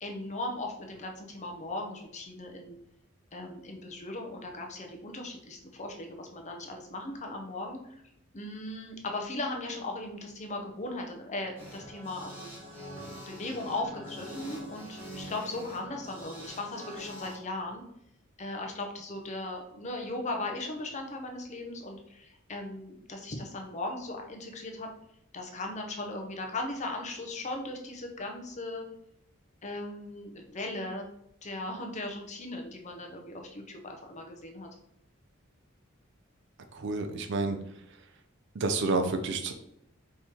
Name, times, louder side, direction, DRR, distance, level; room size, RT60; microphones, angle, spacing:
voice 1, 0.0-2.8 3.3-7.8 8.3-12.5 13.3-17.8 18.4-24.9 25.3-28.8 29.6-31.1 31.4-34.7, left 2 dB, 35° left, 2 dB, 0.7 m, -38 dB
sound 1, 11.6-17.4, equal, 10° right, 1.3 m, -44 dB
voice 2, 36.7-38.0 38.5-39.5, right 3 dB, 60° right, 7 dB, 0.5 m, -30 dB
4.4 x 3.0 x 3.6 m, 0.76 s
head